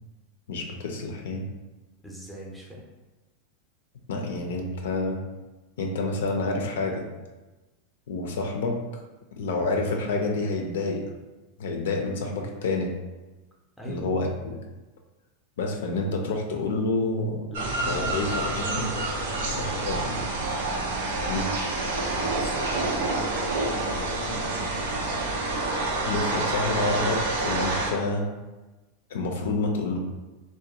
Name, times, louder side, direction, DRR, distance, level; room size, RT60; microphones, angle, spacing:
voice 1, 0.5-1.5 4.1-5.2 5.8-7.1 8.1-8.8 9.4-11.0 11.6-12.9 13.9-14.6 15.6-17.5 17.9-18.9 19.5-20.0 21.3-21.5 26.0-28.2 29.1-30.0, left 3 dB, 85° left, 2 dB, 0.4 m, -28 dB
voice 2, 2.0-2.8 13.8-14.1 17.5-20.3 22.0-24.8, equal, ahead, -3 dB, 0.5 m, -40 dB
sound 1, 17.5-27.9, right 2 dB, 85° right, 0.4 m, -28 dB
Wind instrument woodwind instrument, 23.2-26.7, equal, 45° right, 0.6 m, -39 dB
2.4 x 2.1 x 2.8 m, 1.1 s
supercardioid pair, 130°, 0 cm